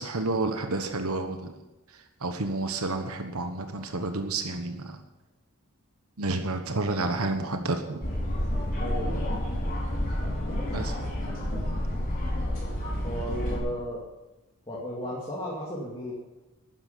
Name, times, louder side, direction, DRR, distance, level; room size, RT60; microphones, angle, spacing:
voice 1, 0.0-1.5 1.9-5.0 6.2-8.1 10.7-11.0, right 2 dB, 70° right, 6 dB, 1.3 m, -30 dB
sound 1, 8.0-13.6, equal, 40° left, 5.3 m, -29 dB
voice 2, 8.8-9.2 13.0-14.1 14.7-16.1, equal, 25° left, -4 dB, 2.4 m, -34 dB
12.5 x 9.8 x 6.8 m, 1.0 s
head